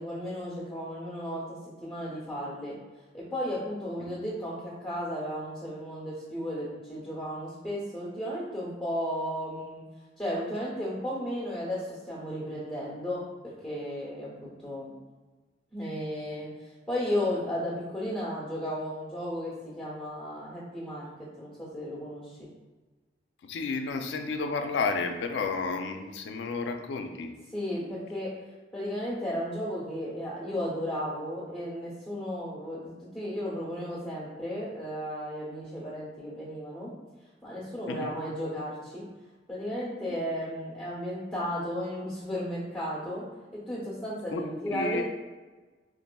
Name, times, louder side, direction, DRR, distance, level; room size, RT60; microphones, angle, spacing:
voice 1, 0.0-2.8 3.1-9.8 10.2-14.3 14.6-14.9 15.7-16.5 16.9-22.5 27.5-28.3 28.7-36.9 37.4-39.1 39.5-43.2 43.5-45.0, equal, ahead, -8 dB, 0.8 m, -34 dB
voice 2, 23.4-27.3 37.9-38.1 44.3-45.0, left 4 dB, 75° left, 6 dB, 0.3 m, -32 dB
4.0 x 2.4 x 2.2 m, 1.3 s
head